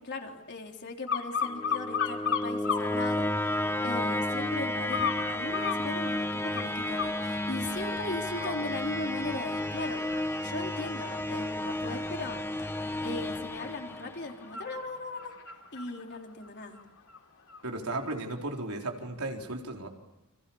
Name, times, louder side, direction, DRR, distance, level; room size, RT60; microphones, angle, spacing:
voice 1, 0.0-10.0 10.4-12.7 13.0-15.3 15.7-16.8, left 2 dB, 50° left, 2 dB, 3.8 m, -38 dB
sound 1, 1.1-2.9 3.3-4.0 4.9-7.2 7.7-7.9 8.3-17.6 18.0-18.1, left 7 dB, 65° left, 3.4 m, -36 dB
sound 2, 1.4-14.5, left 1 dB, 10° left, 1.5 m, -32 dB
voice 2, 17.6-19.9, right 2 dB, 85° right, 2 dB, 4.1 m, -35 dB
29.5 x 27.0 x 7.2 m, 0.99 s
head